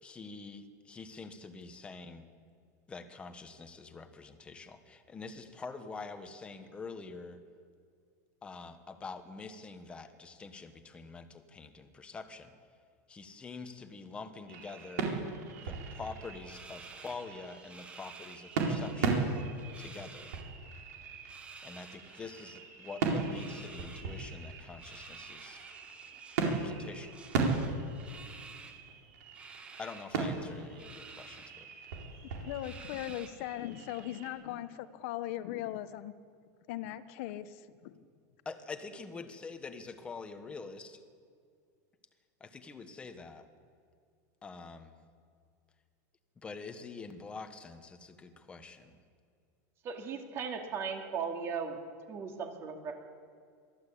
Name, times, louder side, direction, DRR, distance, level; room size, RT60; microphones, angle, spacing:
voice 1, 0.0-2.3 2.9-7.4 8.4-12.5 13.1-15.1 15.6-19.3 19.8-20.4 21.6-25.6 26.4-27.2 29.8-31.7 38.4-41.0 42.4-43.5 44.4-44.9 46.4-49.0, left 4 dB, 10° left, 8 dB, 1.2 m, -46 dB
sound 1, 14.5-34.3, right 4 dB, 75° right, 4.3 m, -37 dB
sound 2, 16.4-19.0 19.2-20.4 21.2-22.5 23.3-24.1 24.8-26.7 27.1-28.8 29.3-30.1 30.8-31.5 31.9-32.0 32.6-33.5, right 4 dB, 10° right, 1.2 m, -52 dB
voice 2, 32.4-36.1 36.7-38.0, left 13 dB, 50° left, 12 dB, 1.0 m, -39 dB
voice 3, 49.8-51.8 52.1-53.0, right 6 dB, 30° right, 4 dB, 2.4 m, -37 dB
22.5 x 14.5 x 8.4 m, 2.2 s
supercardioid pair, 170°, 9 cm